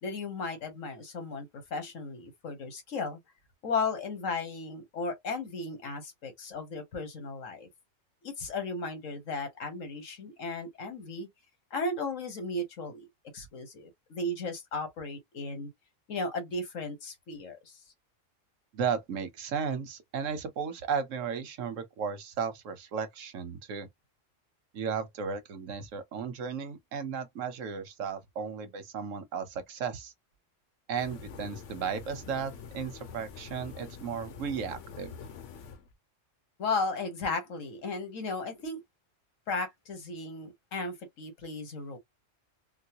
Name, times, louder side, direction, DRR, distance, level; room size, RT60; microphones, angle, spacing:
voice 1, 0.0-3.2 3.6-7.7 8.2-11.3 11.7-13.0 13.3-15.7 16.1-17.8 36.6-38.8 39.5-42.0, left 3 dB, 90° left, 1.5 m, -35 dB
voice 2, 18.7-23.9 24.7-30.1 30.9-35.1, right 6 dB, 85° right, 1.2 m, -35 dB
sound 1, 30.9-35.9, left 6 dB, 70° left, 1.0 m, -46 dB
3.8 x 2.2 x 2.8 m
omnidirectional pair, 1.3 m